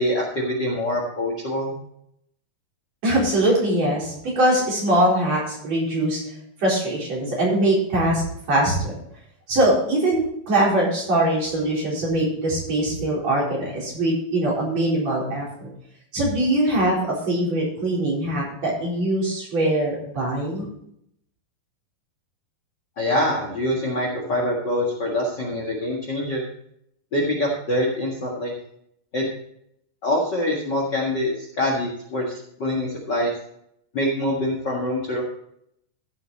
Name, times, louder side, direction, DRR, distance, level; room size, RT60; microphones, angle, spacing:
voice 1, 0.0-1.7 23.0-26.4 27.1-28.5 29.1-29.2 30.0-33.3 33.9-35.2, left 1 dB, 40° left, -1 dB, 1.7 m, -25 dB
voice 2, 3.0-6.2 6.6-8.2 8.5-8.9 9.5-15.7 16.1-17.0 17.3-20.7, right 1 dB, 50° right, -5 dB, 5.3 m, -22 dB
15.0 x 6.9 x 4.1 m, 0.72 s
omnidirectional pair, 4.0 m